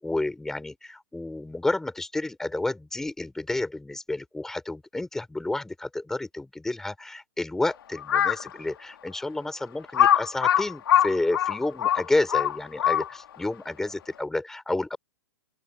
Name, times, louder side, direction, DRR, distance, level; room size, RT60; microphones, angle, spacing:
voice 1, 0.0-15.0, left 2 dB, 5° left, 7.1 m, -30 dB
Crow, 8.0-8.5 9.1-9.2 9.9-13.3, left 10 dB, 80° left, 2.8 m, -22 dB
open air
hypercardioid pair, 165°, 12 cm